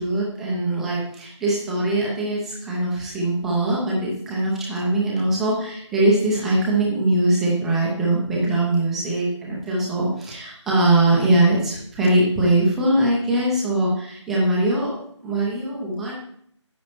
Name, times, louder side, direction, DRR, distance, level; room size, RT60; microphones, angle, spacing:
voice 1, 0.0-14.9 15.2-16.1, right 2 dB, ahead, -5 dB, 0.6 m, -21 dB
9.5 x 9.0 x 3.1 m, 0.66 s
figure-of-eight pair, 160°, 16 cm